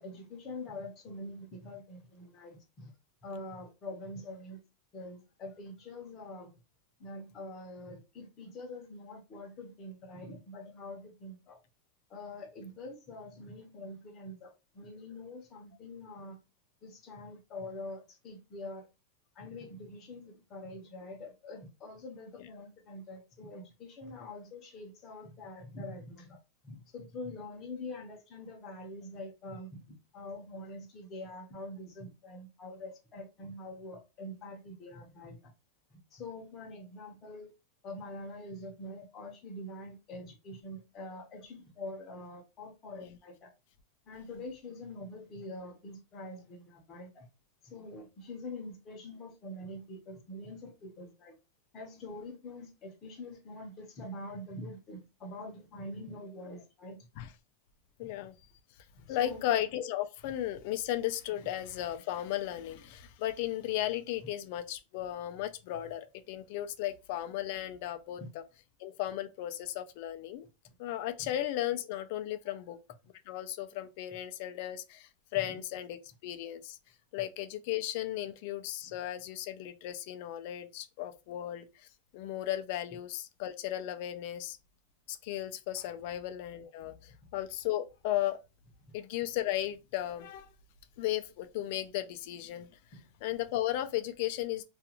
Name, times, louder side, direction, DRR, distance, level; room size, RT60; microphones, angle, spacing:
voice 1, 0.0-2.9 3.2-4.6 4.9-6.5 7.0-11.6 12.1-16.4 16.8-18.9 19.3-26.4 26.6-29.8 30.1-35.5 36.1-37.5 37.8-43.5 44.1-47.3 47.6-51.3 51.7-57.0 58.0-58.1 59.1-59.5 68.2-68.3 71.2-71.3 78.8-78.9, left 1 dB, 20° left, 0.7 m, -45 dB
voice 2, 58.0-58.3 59.1-68.4 68.8-70.5 70.8-72.8 73.3-76.8 77.1-81.9 82.1-84.6 85.1-88.4 88.9-90.5 91.0-92.7 93.2-94.6, left 13 dB, 45° left, 0.3 m, -35 dB
2.4 x 2.3 x 2.8 m
supercardioid pair, 180°, 0 cm